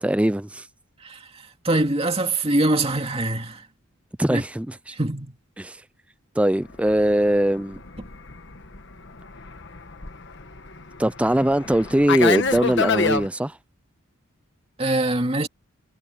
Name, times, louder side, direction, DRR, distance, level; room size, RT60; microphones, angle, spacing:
voice 1, 0.0-0.7 4.2-4.9 5.6-5.8 6.4-7.8 11.0-13.6, right 1 dB, 5° right, 0.4 m, -21 dB
voice 2, 1.6-3.6 4.3-4.4 4.9-5.4 14.8-15.5, right 2 dB, 25° right, 2.6 m, -23 dB
Fixed-wing aircraft airplane, 6.8-13.3, left 5 dB, 55° left, 1.5 m, -28 dB
head